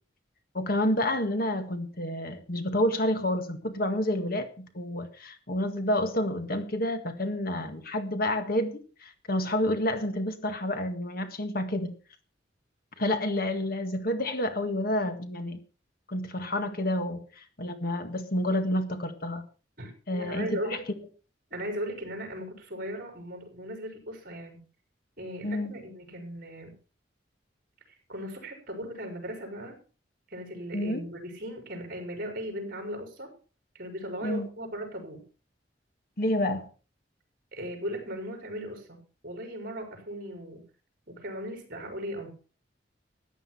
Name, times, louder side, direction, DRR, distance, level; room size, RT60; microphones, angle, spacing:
voice 1, 0.5-11.9 13.0-15.6 16.1-19.5 20.1-20.6 25.4-25.7 30.7-31.0 34.2-34.5 36.2-36.7, left 1 dB, 55° left, 8 dB, 1.8 m, -29 dB
voice 2, 19.8-20.8 21.5-24.6 25.2-26.7 27.9-29.8 30.3-33.3 33.7-35.2 37.5-40.6 41.1-42.3, equal, 50° right, 4 dB, 5.0 m, -37 dB
14.0 x 9.4 x 5.7 m, 0.37 s
head